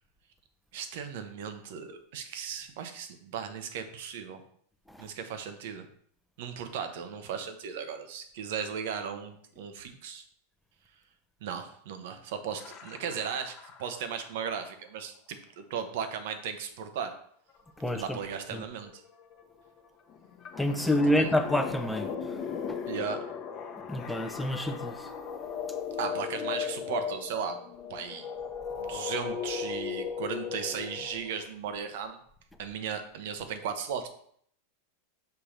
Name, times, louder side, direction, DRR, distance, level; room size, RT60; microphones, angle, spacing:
voice 1, 0.7-4.4 5.0-5.9 6.4-10.2 11.4-17.2 17.9-19.0 21.1-21.3 22.9-23.2 26.0-27.6 27.9-28.3 28.8-32.2 32.6-34.1, right 7 dB, 65° right, 8 dB, 0.8 m, -36 dB
sound 1, 12.6-14.5 17.5-17.6 17.8-31.5, left 7 dB, 35° left, 0.8 m, -37 dB
voice 2, 17.8-18.2 18.5-18.6 20.6-22.8 23.9-25.1, left 1 dB, 5° left, 6 dB, 0.6 m, -28 dB
6.8 x 2.9 x 5.0 m, 0.64 s
supercardioid pair, 130°, 0 cm